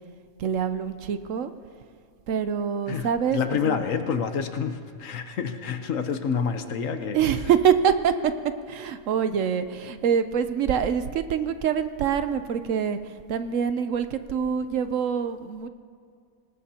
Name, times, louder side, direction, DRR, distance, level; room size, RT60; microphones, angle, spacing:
voice 1, 0.4-1.5 2.3-3.8 7.1-8.3 8.7-15.7, right 7 dB, 70° right, 10 dB, 1.0 m, -25 dB
voice 2, 2.9-7.2, left 6 dB, 65° left, 8 dB, 1.2 m, -28 dB
25.0 x 19.0 x 2.9 m, 2.2 s
omnidirectional pair, 1.5 m